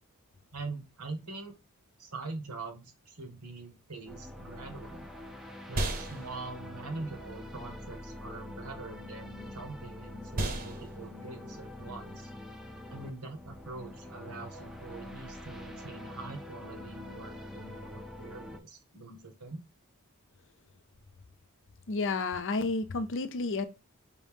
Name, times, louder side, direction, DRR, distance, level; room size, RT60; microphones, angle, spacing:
voice 1, 0.5-1.5 2.0-5.1 5.7-12.3 12.9-19.6, right 3 dB, 85° right, 1.4 m, -43 dB
sound 1, 4.1-18.6, left 1 dB, ahead, 0.6 m, -45 dB
sound 2, 5.7-14.0, right 2 dB, 40° right, 0.9 m, -40 dB
voice 2, 21.9-23.6, left 3 dB, 60° left, 0.6 m, -31 dB
5.4 x 2.7 x 3.5 m
head